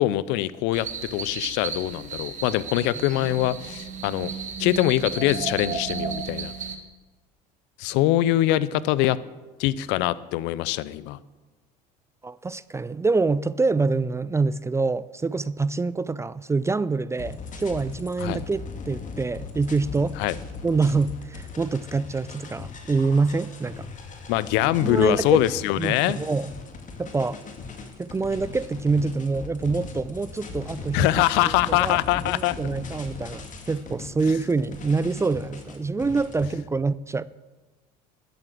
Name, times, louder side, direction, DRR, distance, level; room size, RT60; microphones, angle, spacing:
voice 1, 0.0-4.3 4.6-6.5 7.8-9.2 9.6-11.2 18.2-18.4 20.2-20.4 24.3-26.2 30.9-32.6, left 15 dB, 65° left, 0.6 m, -23 dB
sound 1, 0.7-6.8, right 6 dB, 40° right, 1.8 m, -34 dB
voice 2, 12.2-20.2 20.6-23.9 24.8-25.4 25.8-26.5 27.0-27.4 28.0-32.0 32.3-37.2, right 4 dB, 15° right, 0.4 m, -26 dB
sound 2, 17.2-36.5, left 4 dB, 40° left, 2.3 m, -39 dB
12.5 x 7.9 x 7.8 m
hypercardioid pair, 75°, 19 cm